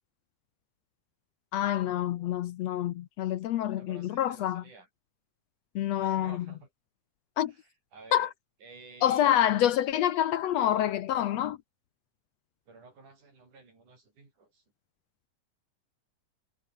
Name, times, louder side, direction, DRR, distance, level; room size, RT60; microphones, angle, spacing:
voice 1, 1.5-4.6 5.8-6.4 7.4-7.5 8.1-8.3 9.0-11.6, left 11 dB, 70° left, 1.8 m, -27 dB
voice 2, 3.7-4.9 6.0-6.7 7.5-8.3 8.6-9.4 12.7-14.6, right 3 dB, 75° right, 8.7 m, -52 dB
omnidirectional pair, 3.5 m